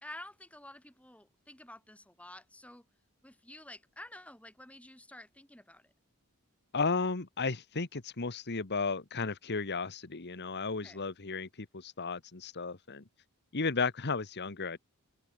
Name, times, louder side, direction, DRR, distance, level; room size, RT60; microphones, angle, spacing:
voice 1, 0.0-2.8 3.2-5.9 10.8-11.0, left 1 dB, 5° left, 2.3 m, -50 dB
voice 2, 6.7-13.0 13.5-14.8, left 4 dB, 50° left, 1.4 m, -34 dB
open air
head